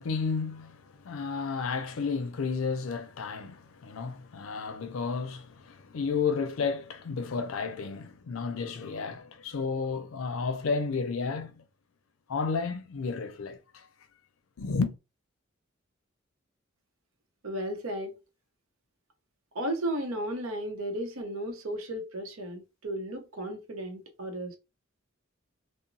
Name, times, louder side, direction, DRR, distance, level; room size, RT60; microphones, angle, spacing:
voice 1, 0.0-11.6 12.3-13.9 14.6-14.9, left 5 dB, 85° left, 0.5 m, -32 dB
voice 2, 17.4-18.1 19.5-24.6, right 1 dB, 85° right, 0.7 m, -34 dB
2.8 x 2.0 x 2.5 m
head